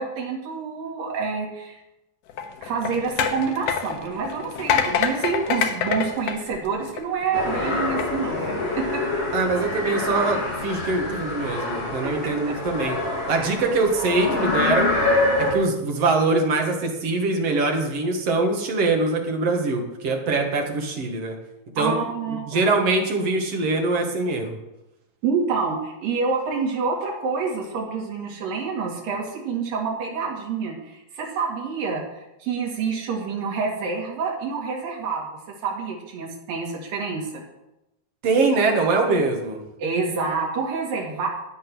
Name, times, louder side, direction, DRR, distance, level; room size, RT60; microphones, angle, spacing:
voice 1, 0.0-1.8 2.6-9.2 12.0-12.1 12.5-12.6 13.4-13.5 21.8-22.8 25.2-32.0 32.4-37.4 39.8-41.3, right 5 dB, 80° right, -1 dB, 4.4 m, -27 dB
sound 1, 2.3-7.2 7.8-8.1, left 7 dB, 70° left, 2.6 m, -26 dB
sound 2, 7.3-15.5, left 2 dB, 45° left, 4.0 m, -26 dB
voice 2, 9.3-13.0 13.2-15.0 15.4-21.4 21.8-22.0 22.3-24.5 38.2-39.6, right 3 dB, 50° right, 2 dB, 2.7 m, -23 dB
14.0 x 9.2 x 6.3 m, 0.93 s
omnidirectional pair, 3.9 m